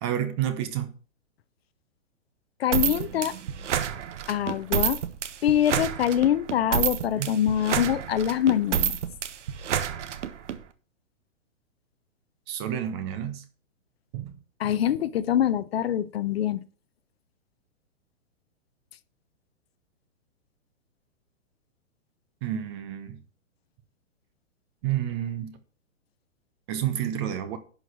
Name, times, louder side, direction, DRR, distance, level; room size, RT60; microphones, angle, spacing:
voice 1, 0.0-0.9 7.2-7.3 12.5-13.4 14.1-14.3 22.4-23.2 24.8-25.6 26.7-27.6, right 10 dB, 20° right, 0.7 m, -29 dB
voice 2, 2.6-3.4 4.3-5.0 5.4-9.0 14.6-16.6, left 10 dB, 50° left, 0.7 m, -24 dB
sound 1, 2.7-10.6, right 9 dB, 65° right, 1.2 m, -28 dB
11.0 x 4.8 x 6.0 m
hypercardioid pair, 160°, 39 cm